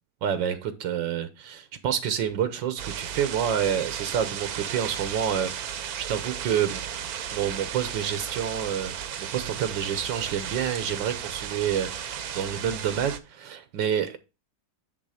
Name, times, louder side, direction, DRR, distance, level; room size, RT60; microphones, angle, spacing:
voice 1, 0.2-5.5 6.0-6.8 7.3-8.9 9.2-14.2, right 9 dB, 85° right, 1.6 m, -28 dB
sound 1, 2.8-13.2, right 9 dB, 65° right, 1.1 m, -35 dB
9.9 x 3.6 x 4.9 m
omnidirectional pair, 1.9 m